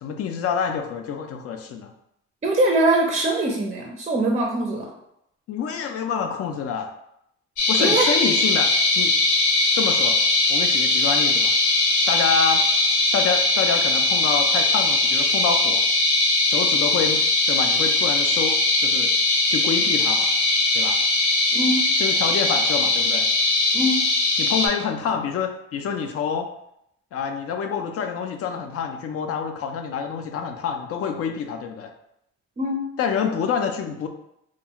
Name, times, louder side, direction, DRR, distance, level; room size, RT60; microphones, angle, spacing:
voice 1, 0.0-1.9 5.5-6.9 7.7-9.2 9.7-10.2 10.5-11.5 12.1-12.7 13.1-15.8 16.5-17.2 17.5-19.1 19.5-20.3 20.7-21.0 22.0-23.3 24.4-26.5 27.1-31.9 33.0-34.1, left 6 dB, 55° left, 5 dB, 0.4 m, -27 dB
voice 2, 2.4-4.9 7.8-8.1 21.5-21.9 23.7-24.0 32.6-32.8, right 1 dB, 25° right, 0 dB, 0.4 m, -22 dB
sound 1, 7.6-24.7, left 2 dB, 70° left, 0.8 m, -20 dB
2.4 x 2.2 x 2.8 m, 0.78 s
supercardioid pair, 75°, 29 cm